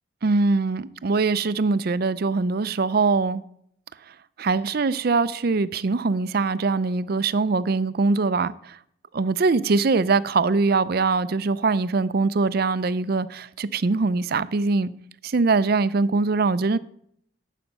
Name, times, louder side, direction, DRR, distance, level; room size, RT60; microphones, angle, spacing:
voice 1, 0.2-3.4 4.4-8.8 9.1-14.9 15.2-16.8, right 3 dB, 50° right, 0.5 m, -22 dB
11.5 x 8.3 x 5.4 m
head